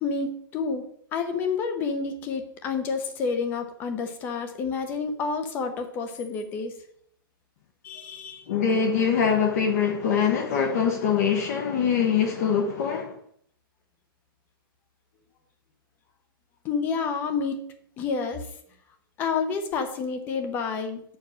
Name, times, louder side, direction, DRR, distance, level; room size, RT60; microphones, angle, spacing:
voice 1, 0.0-6.8 7.8-8.5 16.6-17.6 18.0-18.5 19.2-21.0, left 5 dB, 15° left, 0.8 m, -29 dB
voice 2, 8.5-13.1, left 7 dB, 40° left, 1.1 m, -23 dB
8.2 x 4.7 x 6.3 m
hypercardioid pair, 170°, 12 cm